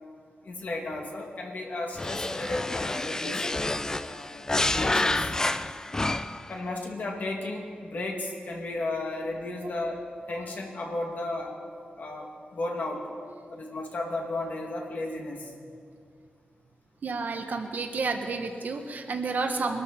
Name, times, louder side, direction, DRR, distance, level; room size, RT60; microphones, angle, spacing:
voice 1, 0.4-5.3 6.5-10.0 10.3-11.5 12.0-13.0 13.5-15.5, left 2 dB, 60° left, 0 dB, 2.4 m, -34 dB
sound 1, 2.0-6.5, left 2 dB, 20° left, 0.4 m, -28 dB
voice 2, 17.0-19.8, right 4 dB, 60° right, 5 dB, 1.2 m, -30 dB
23.5 x 13.0 x 4.3 m, 2.2 s
wide cardioid pair, 125°, 3 cm